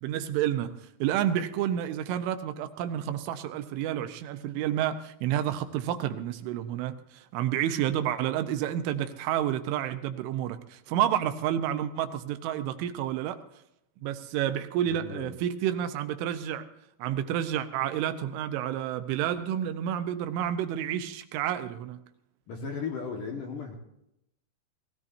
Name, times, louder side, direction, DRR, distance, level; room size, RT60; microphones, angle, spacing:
voice 1, 0.0-0.7 1.0-13.4 14.0-16.7 17.0-22.0, right 10 dB, 80° right, 3.4 m, -30 dB
voice 2, 14.9-15.3 22.5-23.8, left 5 dB, 60° left, 2.5 m, -36 dB
20.5 x 16.5 x 2.7 m
omnidirectional pair, 5.6 m